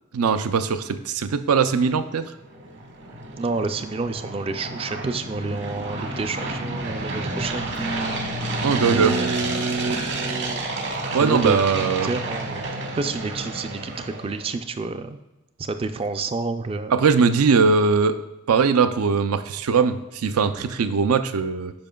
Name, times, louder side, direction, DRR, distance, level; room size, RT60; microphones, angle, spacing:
voice 1, 0.1-2.2 8.6-9.1 11.1-12.1 16.9-18.2 18.5-21.7, right 5 dB, 85° right, 11 dB, 0.5 m, -20 dB
sound 1, 2.2-14.5, right 2 dB, 55° right, 1.1 m, -30 dB
voice 2, 3.4-7.7 8.8-10.6 11.2-12.6 12.9-15.2 15.6-16.9, right 3 dB, 25° right, 9 dB, 0.3 m, -29 dB
8.7 x 5.6 x 2.3 m, 1.0 s
head